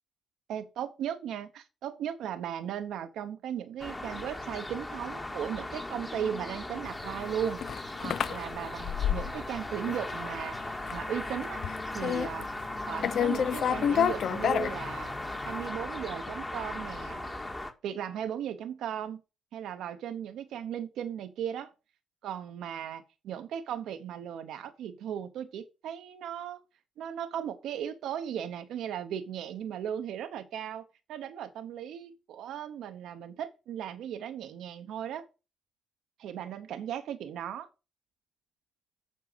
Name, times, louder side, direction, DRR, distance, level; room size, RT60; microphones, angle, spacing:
voice 1, 0.5-7.6 8.0-11.6 11.9-12.5 12.8-15.1 15.4-17.3 17.8-19.2 19.5-21.7 22.2-26.6 27.0-35.3 36.2-37.7, right 9 dB, 80° right, 0.8 m, -37 dB
sound 1, 3.8-17.7, left 1 dB, 20° left, 1.7 m, -38 dB
sound 2, 7.1-9.6 9.9-10.4 10.8-11.1 11.3-12.7 13.0-15.3, left 8 dB, 70° left, 0.4 m, -29 dB
7.3 x 4.6 x 6.7 m
supercardioid pair, 65°, 0 cm